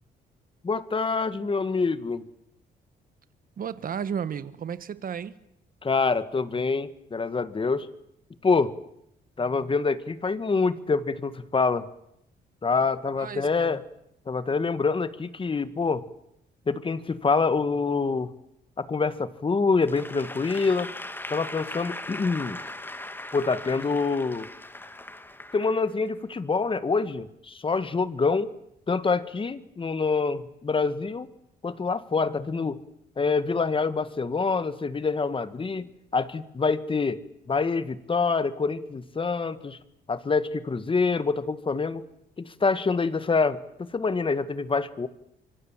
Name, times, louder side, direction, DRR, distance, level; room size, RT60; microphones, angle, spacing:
voice 1, 0.6-2.2 5.8-7.9 8.4-8.7 9.4-11.8 12.6-13.8 14.3-16.0 16.7-18.3 18.8-20.9 21.3-22.6 23.3-24.5 25.5-28.5 28.9-31.3 31.6-32.8 33.2-37.2 37.5-39.8 40.1-42.0 42.4-43.6 43.9-45.1, left 4 dB, 30° left, 13 dB, 1.7 m, -26 dB
voice 2, 3.6-5.4 13.2-13.8, right 7 dB, 50° right, 14 dB, 1.5 m, -33 dB
Applause / Crowd, 19.8-26.1, left 1 dB, 10° left, 2.1 m, -39 dB
25.5 x 24.5 x 7.5 m, 0.78 s
cardioid pair, 100°, 18 cm